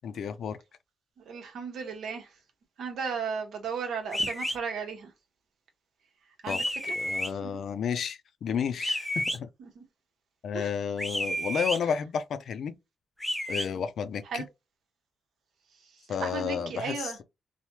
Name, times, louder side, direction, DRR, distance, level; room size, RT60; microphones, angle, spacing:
voice 1, 0.0-0.6 6.5-9.5 10.4-12.7 13.5-14.4 16.1-17.2, left 7 dB, 70° left, 0.4 m, -32 dB
voice 2, 1.3-2.3 2.8-5.1 6.4-6.6 7.4-7.5 9.6-9.8 10.5-10.7 14.3-14.4 16.2-17.2, right 5 dB, 80° right, 0.9 m, -35 dB
sound 1, 4.1-4.6 6.5-7.3 8.8-9.4 11.0-11.8 13.2-13.7, equal, 5° left, 0.7 m, -30 dB
3.2 x 2.1 x 2.8 m
cardioid pair, 100°, 0 cm